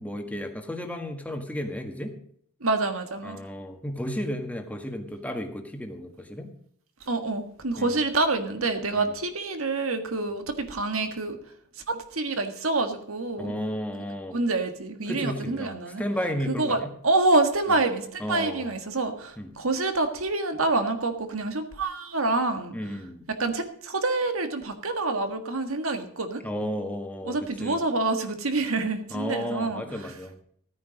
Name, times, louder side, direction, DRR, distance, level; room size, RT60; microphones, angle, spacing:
voice 1, 0.0-2.2 3.2-6.5 7.8-7.9 8.9-9.1 13.4-14.4 15.1-16.9 18.2-18.7 19.4-19.5 22.7-23.2 26.4-27.8 29.1-30.4, equal, 5° left, 4 dB, 1.6 m, -33 dB
voice 2, 2.6-3.4 7.0-11.4 11.7-13.5 14.3-16.0 16.5-22.7 23.4-26.4 27.2-30.1, right 2 dB, 80° right, 7 dB, 1.7 m, -27 dB
14.5 x 9.6 x 5.1 m, 0.65 s
head